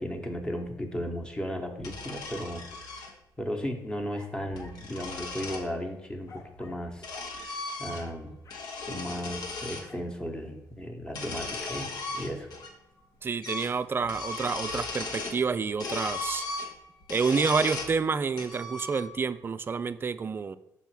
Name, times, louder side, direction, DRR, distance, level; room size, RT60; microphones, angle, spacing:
voice 1, 0.0-3.0 3.4-7.1 7.8-8.4 8.9-12.5, equal, 10° left, 3 dB, 1.0 m, -35 dB
sound 1, 1.8-3.1 4.3-5.7 6.6-8.2 8.5-9.9 11.0-12.7 13.0-13.1 13.4-13.7 14.0-15.4 15.8-18.0 18.4-19.3, left 3 dB, 70° left, 1.1 m, -37 dB
sound 2, 4.1-4.9 5.5-5.8 6.3-6.9 7.1-7.4 8.0-8.8 9.9-10.1, left 3 dB, 50° left, 1.0 m, -49 dB
voice 2, 13.2-16.4 17.1-20.6, right 5 dB, 30° right, 13 dB, 0.3 m, -28 dB
5.5 x 4.2 x 4.6 m, 0.88 s
cardioid pair, 80°, 7 cm